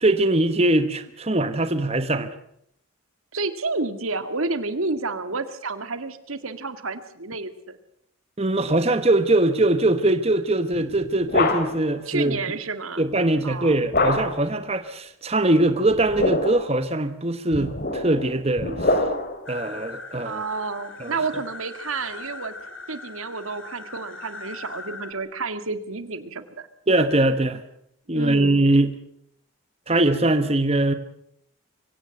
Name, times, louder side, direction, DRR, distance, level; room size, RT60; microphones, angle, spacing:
voice 1, 0.0-2.3 8.4-12.4 13.0-19.0 19.5-20.4 21.0-21.1 26.9-27.6 28.1-29.0 29.9-30.9, right 2 dB, 30° right, 10 dB, 1.1 m, -21 dB
voice 2, 3.3-7.8 12.1-13.1 13.4-13.8 20.2-22.5 22.9-26.7 28.1-28.6, right 3 dB, 80° right, 10 dB, 1.9 m, -30 dB
sound 1, 10.8-11.9 13.9-14.5 15.9-16.7 17.5-19.5, left 2 dB, 45° left, 2.7 m, -25 dB
sound 2, 19.5-25.1, left 3 dB, 65° left, 2.7 m, -40 dB
24.0 x 17.0 x 7.7 m, 0.70 s
head